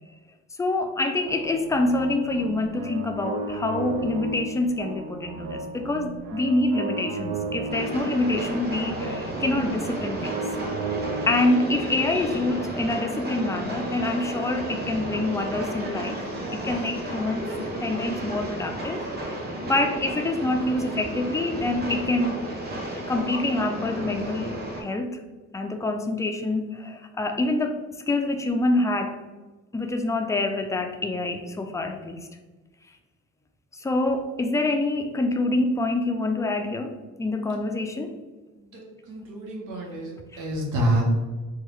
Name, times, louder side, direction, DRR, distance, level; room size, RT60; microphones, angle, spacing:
voice 1, 0.6-10.4 11.3-16.2 16.5-22.5 22.8-25.2 25.5-27.8 28.1-29.2 29.7-32.3 33.7-38.2 40.3-40.4, left 2 dB, 10° left, 5 dB, 0.3 m, -26 dB
sound 1, 1.2-15.3, right 4 dB, 70° right, 0.4 m, -35 dB
Train, 7.7-24.8, right 1 dB, 30° right, 0.9 m, -33 dB
voice 2, 38.6-41.1, right 1 dB, 90° right, -1 dB, 0.9 m, -28 dB
3.6 x 2.2 x 3.1 m, 1.3 s
cardioid pair, 90°, 30 cm